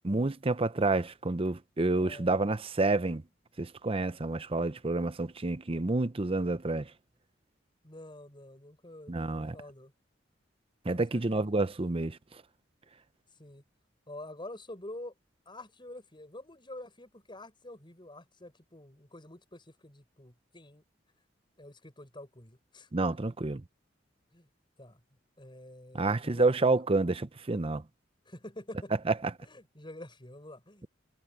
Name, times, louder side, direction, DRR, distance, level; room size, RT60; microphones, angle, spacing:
voice 1, 0.0-3.2 3.6-6.9 9.1-9.6 10.8-12.2 22.9-23.6 25.9-27.8 29.1-29.3, right 2 dB, 30° right, 0.7 m, -29 dB
voice 2, 1.9-2.3 7.8-9.9 10.9-11.5 13.4-13.6 14.1-15.1 15.5-20.8 21.6-23.2 24.3-24.5 24.8-25.0 25.4-26.7 28.3-28.9 29.4-30.9, left 1 dB, 25° left, 7.4 m, -47 dB
head